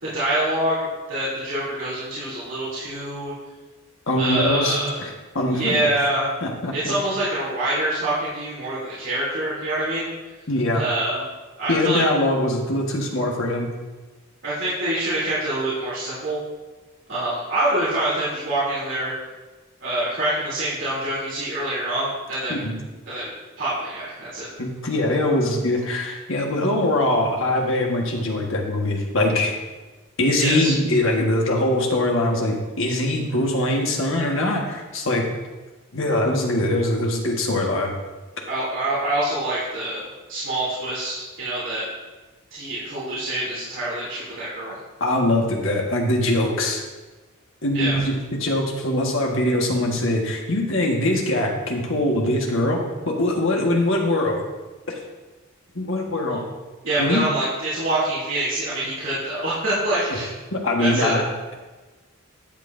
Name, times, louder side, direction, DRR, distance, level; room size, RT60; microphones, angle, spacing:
voice 1, 0.0-3.3 4.2-5.0 5.5-6.3 6.7-10.1 10.7-11.2 11.6-12.1 14.4-16.4 17.1-19.1 19.8-22.6 23.1-23.3 23.6-24.5 30.4-30.7 38.5-40.0 40.3-41.8 42.5-44.7 47.7-47.9 56.8-60.3 60.8-61.1, right 1 dB, 60° right, -10 dB, 3.3 m, -25 dB
voice 2, 4.1-5.1 5.3-5.9 6.4-6.9 10.5-10.8 11.7-13.7 22.5-22.8 24.6-29.5 30.2-35.2 35.9-37.9 45.0-46.8 47.6-52.8 53.0-54.4 54.9-55.0 55.7-56.4 57.0-57.3 60.5-61.2, left 1 dB, 60° left, 0 dB, 1.6 m, -22 dB
12.0 x 8.4 x 2.7 m, 1.2 s
head